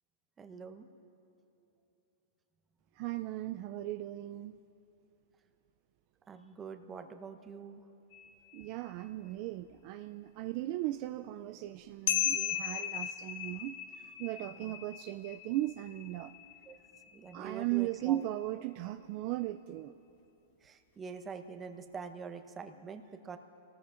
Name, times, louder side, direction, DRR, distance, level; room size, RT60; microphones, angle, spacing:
voice 1, 0.4-0.9 6.3-7.8 14.5-14.9 16.7-16.8 17.1-18.2 20.6-23.4, right 5 dB, 20° right, 6 dB, 0.9 m, -45 dB
voice 2, 3.0-4.6 8.5-16.3 17.3-20.0, right 15 dB, 45° right, 9 dB, 0.3 m, -37 dB
sound 1, 8.1-8.7 12.1-17.8, left 10 dB, 50° left, 0.6 m, -37 dB
28.0 x 19.0 x 2.5 m, 3.0 s
hypercardioid pair, 140°, 0 cm